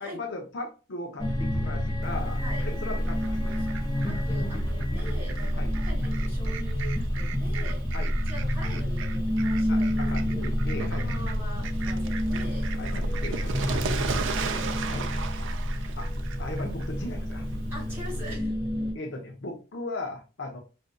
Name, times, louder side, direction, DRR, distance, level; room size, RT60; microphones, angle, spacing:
voice 1, 0.0-3.4 5.6-5.7 7.9-8.1 9.7-11.1 12.7-13.6 14.9-15.1 16.0-16.1 16.4-17.5 18.9-20.6, left 2 dB, 55° left, 2 dB, 0.7 m, -37 dB
sound 1, 1.2-18.9, equal, 20° left, 0.9 m, -29 dB
Fowl, 2.0-18.3, right 3 dB, 60° right, 0.4 m, -36 dB
voice 2, 4.0-7.9 8.3-10.6 11.0-12.7 13.5-15.1 15.4-15.5 17.7-18.5, equal, 10° right, -5 dB, 1.9 m, -43 dB
5.0 x 2.6 x 2.2 m, 0.33 s
head